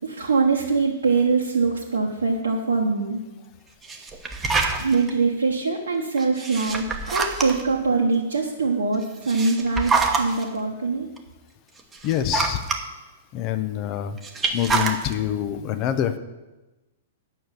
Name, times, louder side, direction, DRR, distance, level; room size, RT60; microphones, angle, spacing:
voice 1, 0.0-3.2 4.8-11.1, right 4 dB, 70° right, -2 dB, 1.1 m, -23 dB
sound 1, 3.8-5.1 6.2-7.8 9.0-10.4 11.2-11.3 11.8-12.8 14.2-15.1, right 4 dB, 15° right, 1.1 m, -25 dB
voice 2, 12.0-12.6 13.3-14.2 14.5-16.2, left 10 dB, 35° left, 10 dB, 0.8 m, -25 dB
9.2 x 6.4 x 7.5 m, 1.1 s
figure-of-eight pair, 105°, 0 cm